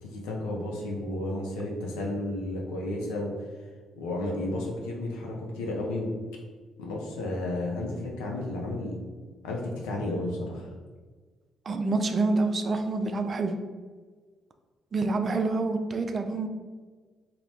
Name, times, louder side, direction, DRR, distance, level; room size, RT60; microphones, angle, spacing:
voice 1, 0.0-3.3 4.0-6.1 6.8-9.0 9.4-10.7, left 1 dB, 85° left, -1 dB, 0.5 m, -32 dB
voice 2, 11.7-13.5 14.9-16.5, right 3 dB, 45° right, 6 dB, 0.3 m, -27 dB
2.7 x 2.1 x 3.2 m, 1.4 s
hypercardioid pair, 50°, 0 cm